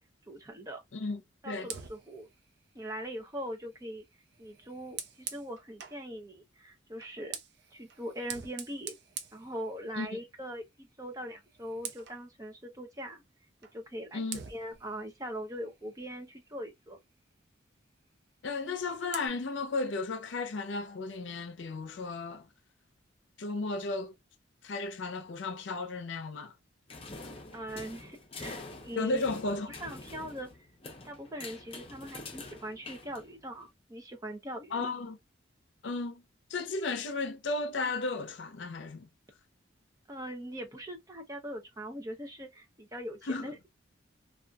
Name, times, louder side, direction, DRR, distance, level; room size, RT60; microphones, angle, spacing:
voice 1, 0.3-0.8 1.4-2.3 2.7-4.0 4.4-7.4 7.7-9.0 9.3-13.2 13.7-14.2 14.5-17.0 27.5-29.2 29.7-30.5 31.0-34.9 40.1-43.7, equal, 20° right, 0.6 m, -41 dB
voice 2, 0.9-1.7 10.0-10.2 14.1-14.4 18.4-22.5 23.4-24.1 24.6-26.5 29.0-29.7 34.7-35.2 35.8-36.2 36.5-39.1 43.2-43.5, left 3 dB, 70° left, 0.6 m, -34 dB
Fire, 1.6-6.1 6.9-10.2 10.6-10.8 11.2-12.2 13.6-13.8 14.3-16.6 18.5-19.3, right 7 dB, 60° right, 0.5 m, -46 dB
sound 1, 26.9-33.6, left 3 dB, 30° left, 0.7 m, -46 dB
2.7 x 2.4 x 2.2 m
head